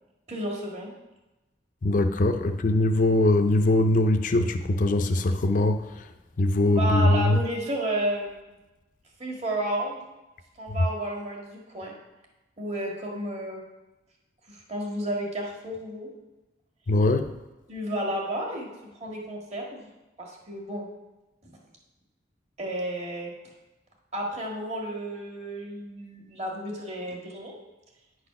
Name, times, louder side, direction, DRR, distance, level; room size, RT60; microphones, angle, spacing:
voice 1, 0.3-0.9 6.7-8.4 9.2-10.0 10.6-11.9 12.6-13.6 14.5-16.1 17.7-18.7 19.0-19.9 20.2-20.9 22.6-23.3 24.1-27.5, right 1 dB, 40° right, 1.7 m, -32 dB
voice 2, 1.8-6.1 6.4-7.4 16.9-17.3, left 2 dB, 45° left, 0.4 m, -22 dB
9.3 x 4.1 x 5.7 m
head